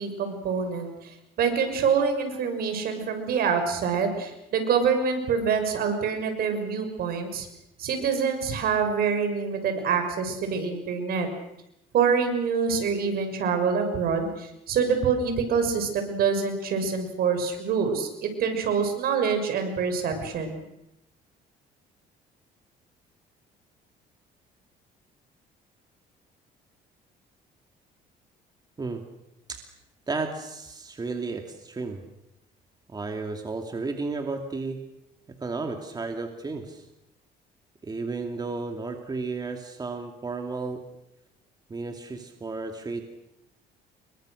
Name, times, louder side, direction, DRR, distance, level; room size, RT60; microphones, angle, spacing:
voice 1, 0.0-7.5 7.8-11.3 11.9-20.6, right 6 dB, 65° right, 6 dB, 6.2 m, -26 dB
voice 2, 30.1-32.0 32.9-34.8 35.4-36.8 37.8-40.8 41.7-43.0, right 3 dB, 25° right, 4 dB, 2.7 m, -33 dB
29.0 x 23.0 x 6.6 m, 0.84 s
cardioid pair, 110°, 17 cm